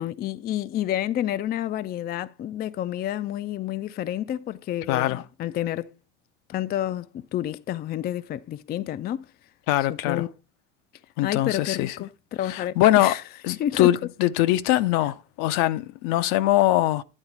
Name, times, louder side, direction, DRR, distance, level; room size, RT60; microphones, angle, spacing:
voice 1, 0.0-5.9 6.5-9.3 9.9-10.3 11.2-13.2 13.6-13.9, left 12 dB, 30° left, 0.4 m, -29 dB
voice 2, 4.9-5.2 9.7-10.3 11.2-12.0 12.4-13.1 13.4-17.0, left 14 dB, 65° left, 0.7 m, -22 dB
9.8 x 3.9 x 5.9 m
supercardioid pair, 95°, 33 cm